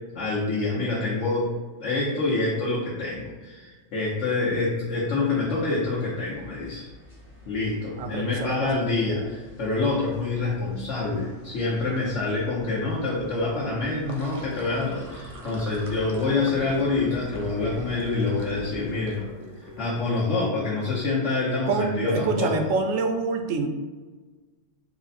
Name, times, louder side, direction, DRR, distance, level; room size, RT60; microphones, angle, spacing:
voice 1, 0.1-1.5 1.8-6.9 7.4-19.2 19.8-22.7, left 3 dB, 70° left, -7 dB, 1.2 m, -26 dB
sound 1, 5.3-19.1, equal, 45° left, 1.4 m, -44 dB
voice 2, 8.0-8.9 21.7-23.7, right 4 dB, 85° right, 4 dB, 1.0 m, -26 dB
Sink (filling or washing), 13.9-20.1, left 1 dB, 35° right, 0.6 m, -43 dB
4.5 x 2.1 x 4.1 m, 1.3 s
omnidirectional pair, 1.3 m